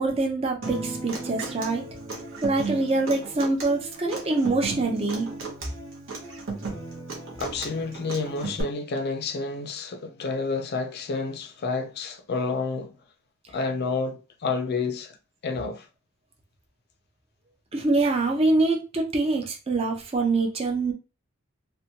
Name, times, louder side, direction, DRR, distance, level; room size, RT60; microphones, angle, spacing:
voice 1, 0.0-1.8 2.4-5.3 17.7-20.9, right 3 dB, 25° right, 0.5 m, -24 dB
Human voice / Acoustic guitar, 0.6-8.6, right 3 dB, 60° right, 0.7 m, -35 dB
voice 2, 7.4-13.0 13.5-15.2 15.4-15.9, left 4 dB, 50° left, 0.4 m, -29 dB
2.7 x 2.2 x 2.7 m
head